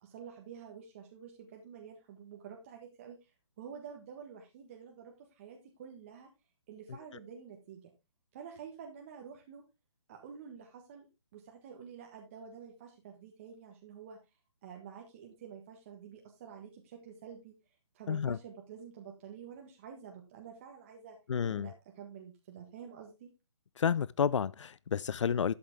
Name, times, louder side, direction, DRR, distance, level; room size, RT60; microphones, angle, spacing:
voice 1, 0.0-3.3 3.6-6.3 6.7-7.9 8.3-9.6 10.1-11.1 11.3-14.2 14.6-17.5 17.9-21.2 21.5-23.3, right 7 dB, 25° right, 1.5 m, -49 dB
voice 2, 18.1-18.4 21.3-21.7 23.8-25.5, left 7 dB, 85° left, 0.4 m, -30 dB
12.0 x 7.8 x 3.5 m
hypercardioid pair, 165°, 15 cm